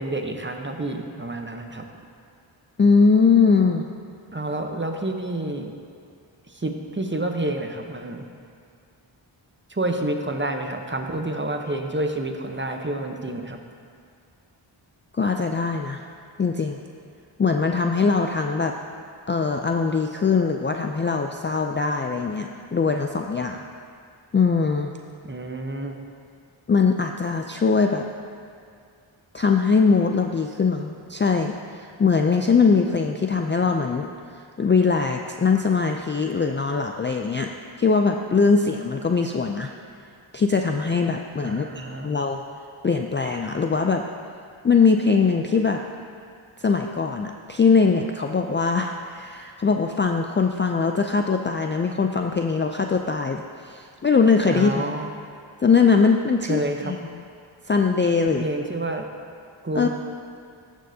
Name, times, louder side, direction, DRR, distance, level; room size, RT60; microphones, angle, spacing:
voice 1, 0.0-1.8 4.3-5.7 6.5-8.2 9.7-13.6 25.2-26.0 41.4-42.1 54.5-55.1 56.5-56.9 58.2-59.1 59.6-59.9, right 1 dB, 25° right, 4 dB, 0.8 m, -29 dB
voice 2, 2.8-3.9 15.1-16.0 16.4-16.8 17.4-18.7 19.3-23.6 24.3-24.9 26.7-28.0 29.3-31.5 32.0-34.1 34.6-37.5 37.8-39.7 40.3-42.4 42.8-44.0 44.6-45.8 46.6-54.7 55.6-57.0 57.7-58.4 59.8-59.9, left 5 dB, 25° left, 3 dB, 0.3 m, -21 dB
14.0 x 6.4 x 2.7 m, 2.3 s
cardioid pair, 45°, 49 cm